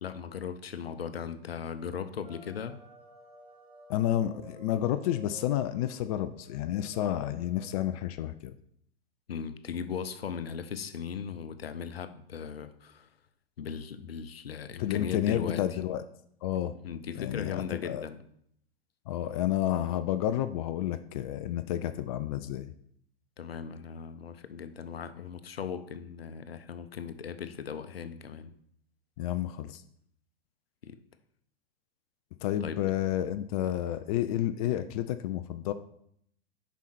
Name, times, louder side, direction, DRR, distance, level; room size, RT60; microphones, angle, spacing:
voice 1, 0.0-2.8 9.3-13.1 13.6-15.8 16.8-18.2 23.4-28.5 30.8-31.0 32.6-32.8, left 7 dB, 75° left, 11 dB, 0.7 m, -38 dB
sound 1, 2.2-7.8, right 2 dB, 35° right, 3.0 m, -53 dB
voice 2, 3.9-8.5 14.8-16.0 16.4-16.7 17.2-18.0 19.1-22.7 29.2-29.8 32.4-35.7, left 12 dB, 40° left, 11 dB, 0.4 m, -30 dB
7.1 x 5.2 x 4.3 m, 0.68 s
figure-of-eight pair, 100°, 31 cm